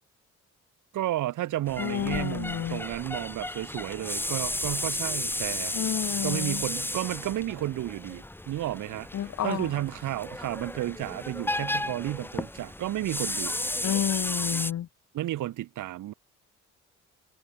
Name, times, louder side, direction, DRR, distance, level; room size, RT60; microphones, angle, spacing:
voice 1, 0.9-5.7 6.2-9.1 9.4-13.6 15.1-16.1, right 14 dB, 80° right, 3.3 m, -32 dB
sound 1, 1.7-14.7, left 1 dB, 5° left, 1.5 m, -33 dB
voice 2, 1.8-2.8 5.7-6.6 9.1-9.8 13.8-14.9, left 11 dB, 65° left, 2.7 m, -30 dB
cardioid pair, 90°, 30 cm